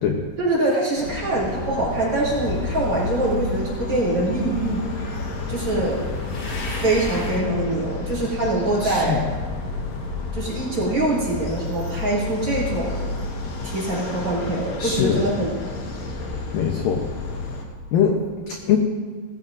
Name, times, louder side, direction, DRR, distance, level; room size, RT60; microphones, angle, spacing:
voice 1, 0.4-4.9 5.5-6.0 6.8-9.3 10.3-13.0 13.6-15.5, right 2 dB, 35° right, -6 dB, 3.1 m, -24 dB
sound 1, 1.0-17.6, left 3 dB, 60° left, 1.9 m, -31 dB
sound 2, 2.1-7.4, left 1 dB, 35° left, 3.3 m, -37 dB
voice 2, 8.8-9.2 14.8-15.2 16.5-17.1 17.9-18.8, left 7 dB, 80° left, 2 dB, 2.0 m, -22 dB
18.5 x 15.0 x 2.6 m, 1.5 s
omnidirectional pair, 5.2 m